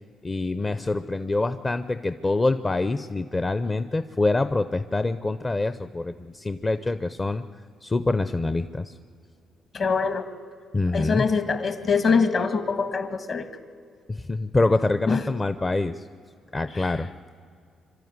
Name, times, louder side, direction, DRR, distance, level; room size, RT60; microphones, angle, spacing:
voice 1, 0.2-7.4 7.8-8.9 10.7-11.2 14.1-16.0 16.5-17.1, left 2 dB, 25° left, 11 dB, 0.7 m, -25 dB
voice 2, 9.7-10.3 10.9-13.5 15.1-15.2, left 5 dB, 50° left, 10 dB, 1.8 m, -23 dB
25.5 x 12.5 x 9.6 m, 2.2 s
cardioid pair, 90°, 0 cm